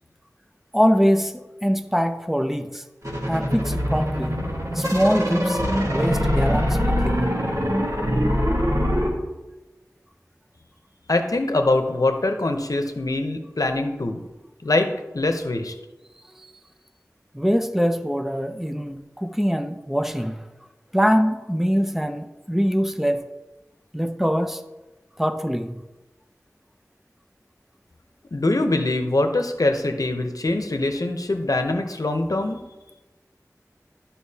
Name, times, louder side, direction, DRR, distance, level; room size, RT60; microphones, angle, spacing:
voice 1, 0.7-2.8 3.3-4.5 4.7-5.6 5.9-7.3 16.4-16.5 17.3-20.5 20.9-23.2 23.9-24.6 25.2-25.8, equal, 5° right, 8 dB, 0.5 m, -23 dB
sound 1, 3.0-9.1, equal, 55° right, 1.5 m, -23 dB
voice 2, 11.1-14.2 14.6-14.9 15.1-15.7 28.3-32.6, left 2 dB, 75° left, 6 dB, 0.7 m, -23 dB
11.5 x 5.6 x 2.8 m, 1.1 s
wide cardioid pair, 45°, 6 cm